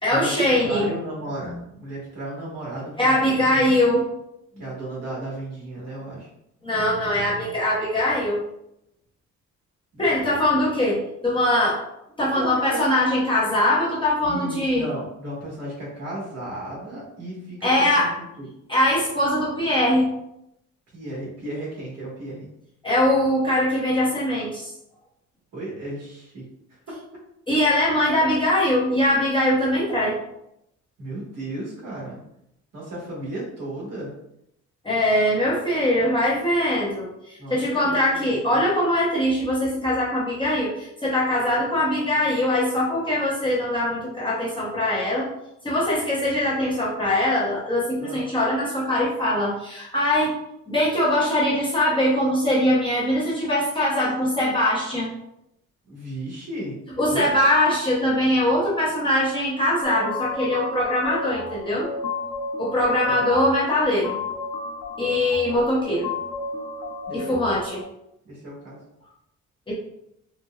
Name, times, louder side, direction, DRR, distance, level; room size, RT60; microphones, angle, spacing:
voice 1, 0.0-0.9 1.4-1.6 3.0-4.0 6.6-8.4 10.0-11.8 12.2-14.9 17.6-18.1 18.7-20.1 22.8-24.7 27.5-30.1 34.8-45.3 45.6-50.4 50.7-55.1 57.0-61.9 62.6-64.2 65.0-66.1 67.1-67.8 69.7-69.8, left 1 dB, 15° left, -7 dB, 0.7 m, -22 dB
voice 2, 0.6-3.8 4.6-6.3 9.9-10.4 12.3-12.8 14.2-18.5 20.9-22.4 25.5-26.4 31.0-32.2 32.7-34.1 37.4-38.6 48.0-48.2 55.9-56.7 57.1-57.2 63.1-63.2 67.1-67.6 68.2-68.8, right 1 dB, 55° right, -5 dB, 1.4 m, -34 dB
sound 1, 59.8-67.8, left 3 dB, 90° left, 0.6 m, -33 dB
4.3 x 2.2 x 2.3 m, 0.80 s
cardioid pair, 170°, 30 cm